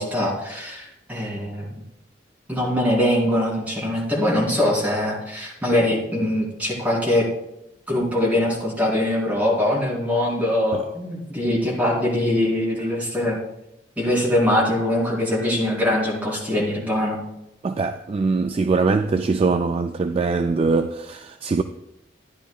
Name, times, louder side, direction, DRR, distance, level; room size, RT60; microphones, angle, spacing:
voice 1, 0.0-1.8 2.5-7.3 7.9-13.4 14.0-17.2, left 1 dB, 10° right, 3.5 m, -22 dB
voice 2, 17.6-21.6, right 4 dB, 30° right, 0.3 m, -22 dB
14.0 x 10.0 x 2.4 m
head